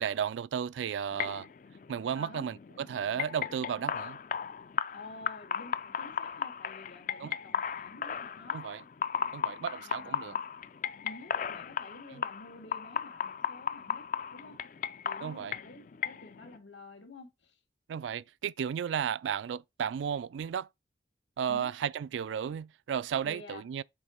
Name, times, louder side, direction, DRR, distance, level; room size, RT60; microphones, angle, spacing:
voice 1, 0.0-1.5 1.9-4.2 7.2-7.3 8.5-8.8 9.3-10.4 12.1-12.2 15.2-15.5 17.9-20.7 21.4-23.8, right 8 dB, 85° right, 0.3 m, -34 dB
sound 1, 1.1-16.6, left 7 dB, 45° left, 0.3 m, -36 dB
voice 2, 2.1-2.4 4.9-8.6 9.7-10.4 11.0-14.0 14.3-14.6 15.0-17.6 21.5-21.7 23.2-23.6, left 2 dB, 85° left, 2.3 m, -50 dB
7.0 x 4.1 x 5.1 m
head